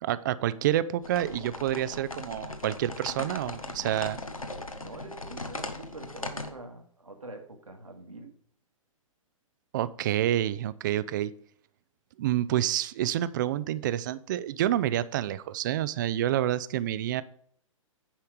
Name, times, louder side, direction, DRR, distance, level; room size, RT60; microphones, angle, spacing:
voice 1, 0.0-4.2 9.7-11.3 12.2-17.2, right 12 dB, 35° right, 17 dB, 0.5 m, -28 dB
sound 1, 1.0-6.5, left 2 dB, 80° left, 1.2 m, -39 dB
voice 2, 4.8-8.3, right 2 dB, 80° right, 3 dB, 1.9 m, -45 dB
10.0 x 5.7 x 4.8 m, 0.62 s
figure-of-eight pair, 115°, 17 cm